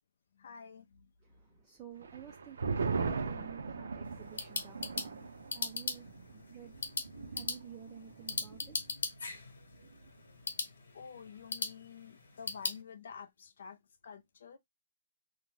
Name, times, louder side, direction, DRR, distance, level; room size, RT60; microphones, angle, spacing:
voice 1, 0.4-1.1 10.9-14.6, left 6 dB, 55° left, 0.5 m, -49 dB
voice 2, 1.2-6.1 6.3-6.7 7.3-8.8, right 8 dB, 15° right, 0.4 m, -51 dB
sound 1, 2.0-8.9 9.2-9.3 9.7-10.2, right 4 dB, 80° right, 0.6 m, -39 dB
sound 2, 4.0-12.8, left 4 dB, 90° left, 1.0 m, -40 dB
2.6 x 2.1 x 3.1 m
hypercardioid pair, 175°, 0 cm